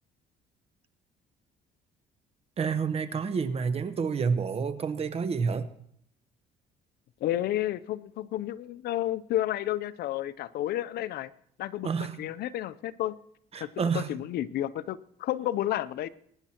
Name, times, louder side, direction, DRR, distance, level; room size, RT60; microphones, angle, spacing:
voice 1, 2.6-5.7 11.8-12.2 13.5-14.1, right 5 dB, 35° right, 11 dB, 1.0 m, -29 dB
voice 2, 7.2-11.3 11.6-13.2 13.6-13.7 13.9-16.1, left 13 dB, 70° left, 16 dB, 0.6 m, -31 dB
22.0 x 10.0 x 2.9 m, 0.72 s
cardioid pair, 110°, 17 cm